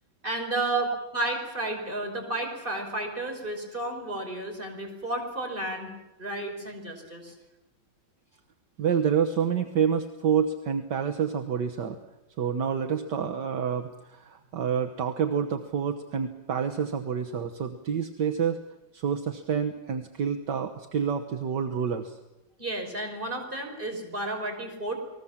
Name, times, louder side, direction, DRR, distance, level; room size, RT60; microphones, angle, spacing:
voice 1, 0.2-0.9 1.1-5.9 6.2-7.3 22.6-24.9, right 1 dB, 25° right, 2 dB, 5.7 m, -32 dB
voice 2, 8.8-12.0 12.4-18.6 18.9-22.2, right 7 dB, 70° right, 5 dB, 1.8 m, -28 dB
29.5 x 20.0 x 7.3 m, 0.99 s
omnidirectional pair, 2.0 m